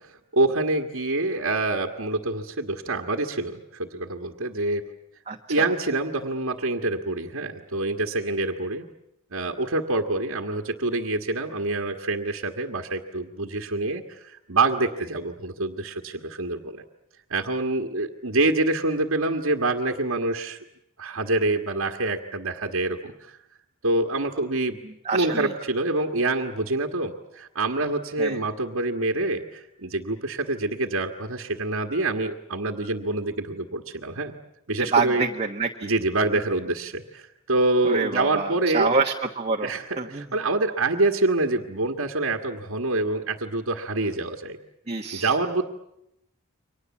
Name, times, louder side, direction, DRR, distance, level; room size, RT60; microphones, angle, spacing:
voice 1, 0.0-4.9 5.5-8.8 9.3-16.8 17.3-20.6 21.0-23.4 23.8-24.7 25.1-34.4 34.7-35.2 35.8-38.9 39.6-44.6 45.1-45.6, right 2 dB, 65° right, 0 dB, 1.7 m, -26 dB
voice 2, 5.3-5.7 25.0-25.5 28.2-28.4 34.9-35.9 37.8-39.7 40.0-40.2 44.9-45.3, right 4 dB, 30° right, 1 dB, 1.4 m, -26 dB
30.0 x 24.0 x 7.3 m, 0.81 s
head